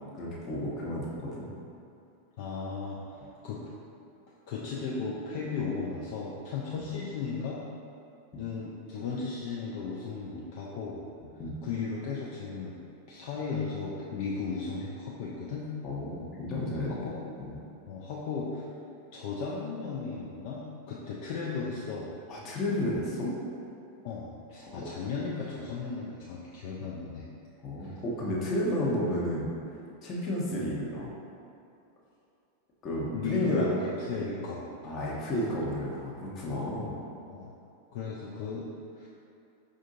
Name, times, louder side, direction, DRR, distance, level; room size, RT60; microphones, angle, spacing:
voice 1, 0.0-1.5 11.4-11.6 15.8-17.0 17.5-17.6 22.3-23.4 24.7-24.8 27.6-29.5 30.0-31.1 32.8-33.7 34.2-34.3 34.8-37.0, left 1 dB, 30° left, -5 dB, 0.8 m, -32 dB
voice 2, 2.4-3.0 3.4-3.6 4.5-7.6 8.4-11.0 11.6-12.8 13.1-15.7 16.9-17.2 17.9-18.7 19.1-22.1 24.0-27.2 27.8-28.0 33.1-34.6 37.3-37.5 37.9-38.7 39.0-39.1, left 4 dB, 50° left, -5 dB, 0.4 m, -35 dB
5.1 x 2.5 x 2.6 m, 2.6 s
figure-of-eight pair, 90°, 0 cm